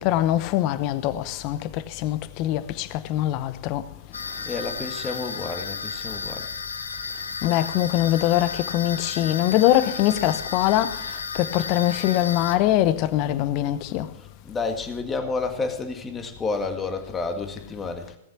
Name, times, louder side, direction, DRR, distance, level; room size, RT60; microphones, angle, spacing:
voice 1, 0.0-3.8 7.4-11.0 11.3-14.1, left 13 dB, 45° left, 0.8 m, -23 dB
sound 1, 4.1-12.6, left 4 dB, 90° left, 0.9 m, -33 dB
voice 2, 4.4-6.5 14.1-18.2, left 4 dB, 15° left, 1.8 m, -30 dB
17.0 x 7.4 x 5.9 m
hypercardioid pair, 120°, 0 cm